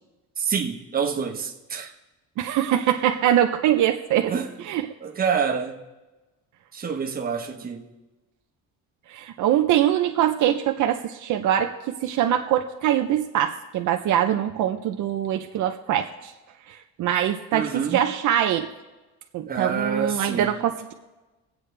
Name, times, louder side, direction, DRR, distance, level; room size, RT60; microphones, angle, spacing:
voice 1, 0.4-1.9 4.3-4.5 5.0-5.8 6.7-7.9 17.5-18.1 19.5-20.5, right 6 dB, 25° right, 1.3 m, -27 dB
voice 2, 2.4-4.3 4.7-4.8 9.1-16.3 17.0-18.7 19.3-20.9, right 11 dB, 65° right, 0.8 m, -23 dB
24.0 x 8.3 x 3.4 m
cardioid pair, 155°, 33 cm